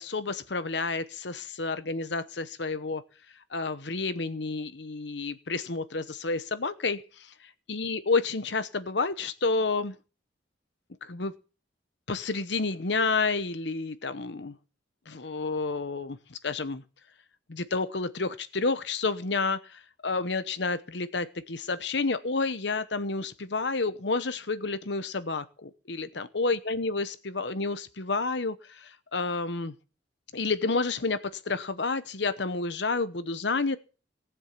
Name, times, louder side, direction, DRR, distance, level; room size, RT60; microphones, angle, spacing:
voice 1, 0.0-3.0 3.5-9.9 11.0-11.3 12.1-14.5 15.1-16.8 17.5-29.7 30.3-33.8, left 3 dB, 65° left, 12 dB, 1.0 m, -30 dB
18.5 x 7.3 x 7.4 m, 0.35 s
head